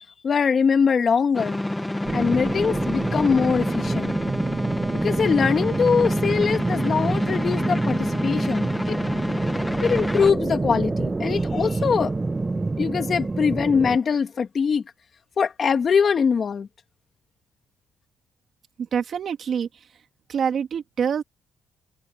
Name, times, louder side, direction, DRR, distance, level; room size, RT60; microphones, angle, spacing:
voice 1, 0.0-1.6 2.1-4.2 5.0-9.0 9.8-12.1 12.8-14.8 15.4-16.7, left 6 dB, 45° left, 2.7 m, -22 dB
sound 1, 1.3-10.3, left 1 dB, 10° left, 1.4 m, -29 dB
sound 2, 2.0-14.0, right 3 dB, 20° right, 0.7 m, -27 dB
voice 2, 18.8-19.9 20.3-21.2, right 7 dB, 55° right, 3.0 m, -26 dB
cardioid pair, 90°, 0 cm